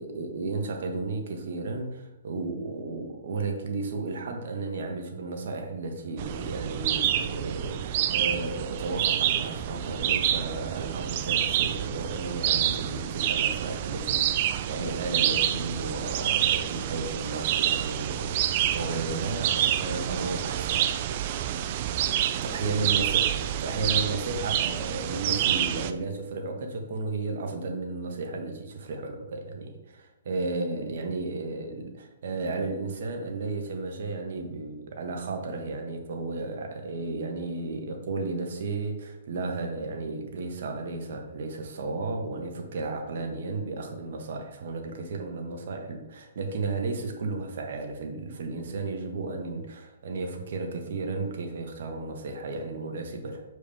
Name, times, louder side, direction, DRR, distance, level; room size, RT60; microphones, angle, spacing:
voice 1, 0.0-20.8 22.4-23.3 23.6-53.4, right 3 dB, 60° right, 3 dB, 1.4 m, -33 dB
sound 1, 6.2-25.9, right 11 dB, 40° right, 0.4 m, -28 dB
6.9 x 4.8 x 3.6 m, 0.92 s
hypercardioid pair, 150°, 0 cm